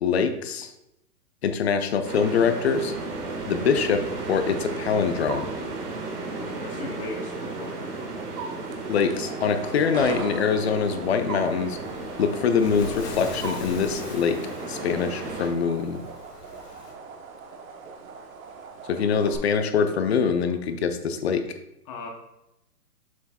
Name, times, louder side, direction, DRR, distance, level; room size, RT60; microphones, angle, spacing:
voice 1, 0.0-0.7 1.4-2.9 3.5-5.5 8.9-11.8 12.2-14.4 14.7-16.0 18.9-21.4, left 6 dB, 45° left, 8 dB, 0.6 m, -24 dB
sound 1, 2.0-15.5, right 3 dB, 80° right, 1.8 m, -34 dB
voice 2, 6.4-8.0 19.2-19.5 21.9-22.1, left 3 dB, 20° left, 2 dB, 0.8 m, -38 dB
sound 2, 8.6-19.4, right 4 dB, 60° right, 1.0 m, -41 dB
Waves surf, 11.7-16.9, left 4 dB, 80° left, 1.4 m, -41 dB
7.2 x 6.1 x 2.3 m, 0.86 s
hypercardioid pair, 150°, 46 cm